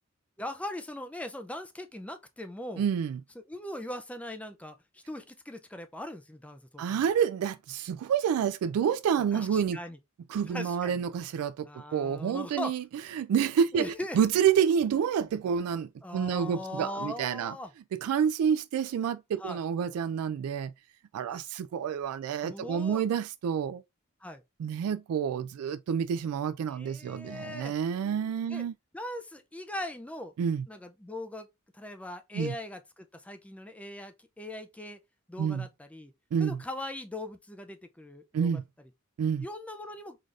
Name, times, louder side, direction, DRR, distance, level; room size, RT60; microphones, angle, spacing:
voice 1, 0.4-2.9 3.4-7.0 9.3-10.0 10.5-10.9 11.7-12.7 13.7-14.2 16.0-17.7 19.4-19.6 22.4-23.0 24.2-24.4 26.7-27.8 28.5-28.6 28.9-30.3 30.7-31.5 31.7-35.0 35.3-36.1 36.4-38.6 39.4-40.2, left 1 dB, 5° left, 0.3 m, -40 dB
voice 2, 2.8-3.2 6.8-9.8 10.3-12.8 13.1-13.9 14.1-17.5 18.0-20.7 21.1-23.8 24.6-28.7 30.4-30.7 32.3-32.5 35.4-35.7 36.3-36.6 38.3-38.6 39.2-39.5, right 7 dB, 90° right, 0.3 m, -28 dB
3.8 x 3.2 x 2.4 m
head